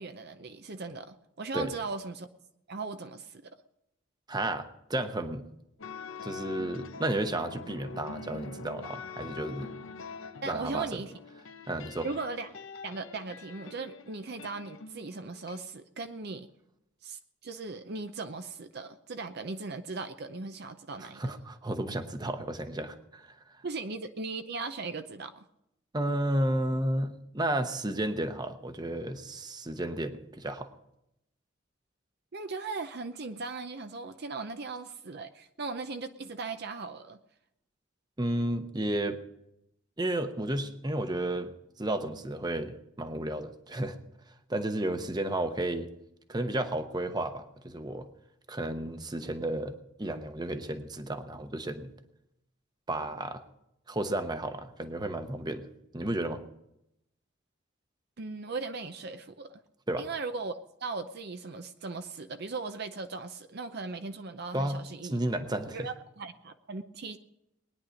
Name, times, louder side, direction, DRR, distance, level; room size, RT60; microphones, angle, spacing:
voice 1, 0.0-2.3 2.7-3.4 10.4-11.1 12.0-12.5 12.8-16.5 17.0-21.2 23.6-25.5 32.3-37.2 58.2-59.6 60.0-65.2 65.7-67.2, right 3 dB, 55° right, 8 dB, 0.7 m, -38 dB
voice 2, 4.3-5.4 6.2-9.7 10.5-10.9 11.7-12.1 21.0-23.3 25.9-30.7 38.2-39.2 40.0-41.5 41.8-44.0 44.5-45.9 46.3-48.1 48.5-49.7 50.0-51.9 52.9-53.4 53.9-55.7 55.9-56.4 59.9-60.0 64.5-65.9, right 1 dB, 20° right, 8 dB, 0.9 m, -32 dB
sound 1, 5.8-15.6, left 4 dB, 90° left, 1.0 m, -44 dB
20.5 x 10.0 x 5.1 m, 0.83 s
head